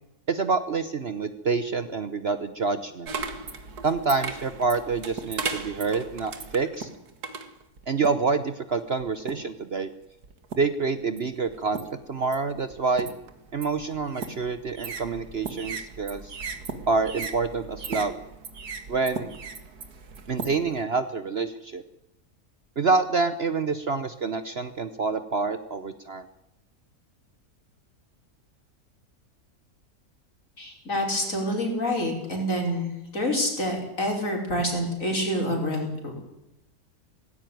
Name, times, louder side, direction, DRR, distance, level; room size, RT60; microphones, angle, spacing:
voice 1, 0.3-3.1 3.8-6.9 7.9-9.9 10.6-11.8 12.1-13.1 13.5-16.2 16.9-18.2 18.9-19.3 20.3-21.8 22.8-26.3, right 4 dB, 45° right, 11 dB, 1.1 m, -27 dB
sound 1, 3.1-8.3 9.0-9.6 10.2-10.8 11.2-20.8, right 5 dB, 75° right, 2.2 m, -37 dB
voice 2, 30.6-36.2, equal, 55° left, 1 dB, 5.6 m, -27 dB
18.5 x 16.5 x 9.3 m, 0.86 s
omnidirectional pair, 1.7 m